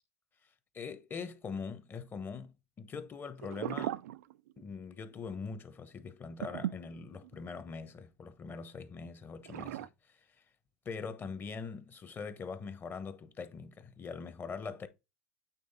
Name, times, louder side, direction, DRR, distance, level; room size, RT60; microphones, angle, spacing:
voice 1, 0.7-4.0 4.6-10.2 10.8-14.9, left 5 dB, 25° left, 1.1 m, -42 dB
sound 1, 3.4-4.8 5.1-5.3 6.4-7.7 9.5-9.9, right 13 dB, 85° right, 0.5 m, -38 dB
8.5 x 3.2 x 4.1 m
supercardioid pair, 115°, 8 cm